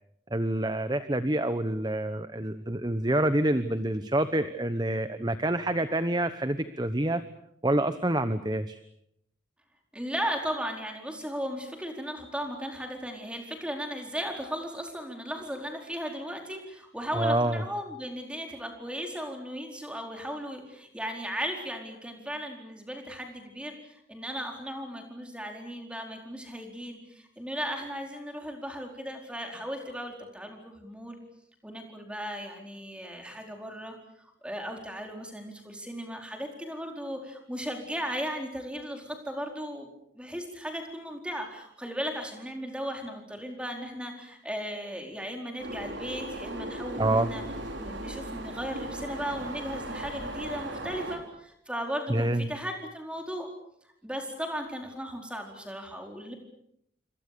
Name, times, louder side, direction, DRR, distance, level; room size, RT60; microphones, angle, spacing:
voice 1, 0.3-7.2 7.6-8.8 17.1-17.6 47.0-47.3 52.1-52.5, right 1 dB, 20° right, 11 dB, 1.0 m, -27 dB
voice 2, 9.9-31.2 31.6-39.9 40.1-47.4 47.8-53.5 54.0-56.3, equal, 5° right, 3 dB, 4.5 m, -36 dB
sound 1, 45.6-51.2, right 1 dB, 85° right, 5.0 m, -37 dB
28.0 x 25.5 x 6.9 m, 0.74 s
head